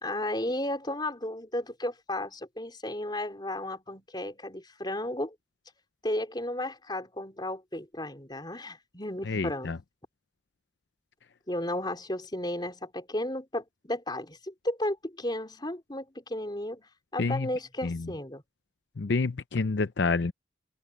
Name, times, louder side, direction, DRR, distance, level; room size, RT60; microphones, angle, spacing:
voice 1, 0.0-5.3 6.0-9.7 11.5-16.8 17.1-18.4, left 1 dB, 25° left, 4.1 m, -34 dB
voice 2, 9.3-9.8 17.2-17.5 17.8-18.0 19.0-20.3, left 3 dB, 70° left, 0.6 m, -28 dB
open air
head